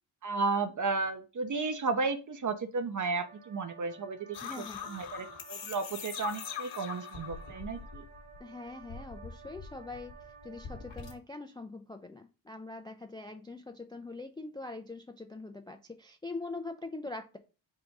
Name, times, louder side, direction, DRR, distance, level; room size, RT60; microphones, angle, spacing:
voice 1, 0.2-4.5 4.9-8.1, right 4 dB, 40° right, 9 dB, 0.7 m, -33 dB
sound 1, 3.1-11.2, right 6 dB, 85° right, 1.9 m, -54 dB
sound 2, 4.3-8.4 8.7-11.1, left 7 dB, 60° left, 1.2 m, -43 dB
voice 2, 4.4-4.9 8.4-10.1 10.4-17.4, left 3 dB, 10° left, 7 dB, 0.3 m, -43 dB
3.6 x 2.6 x 4.6 m, 0.32 s
cardioid pair, 95°, 48 cm